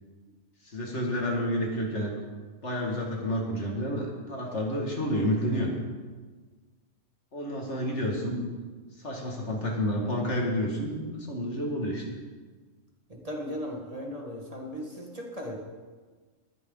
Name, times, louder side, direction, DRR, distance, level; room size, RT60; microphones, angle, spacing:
voice 1, 0.6-2.1 2.6-5.7 7.3-8.4 9.0-12.0, equal, 65° left, -1 dB, 2.6 m, -30 dB
voice 2, 13.1-15.6, equal, 30° right, 0 dB, 1.9 m, -37 dB
20.0 x 10.0 x 4.0 m, 1.4 s
omnidirectional pair, 1.3 m